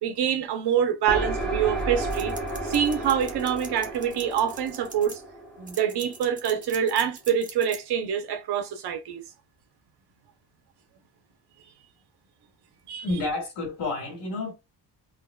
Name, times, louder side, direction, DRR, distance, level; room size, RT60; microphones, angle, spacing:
voice 1, 0.0-2.4 2.6-5.2 5.6-9.2 12.9-13.0, right 8 dB, 65° right, 0.8 m, -26 dB
sound 1, 1.1-6.7, right 2 dB, ahead, 1.0 m, -33 dB
sound 2, 2.0-5.2 5.7-7.8, right 4 dB, 20° right, 0.4 m, -43 dB
voice 2, 13.0-14.5, left 2 dB, 80° left, 1.9 m, -30 dB
3.7 x 2.2 x 2.3 m
wide cardioid pair, 180°, 42 cm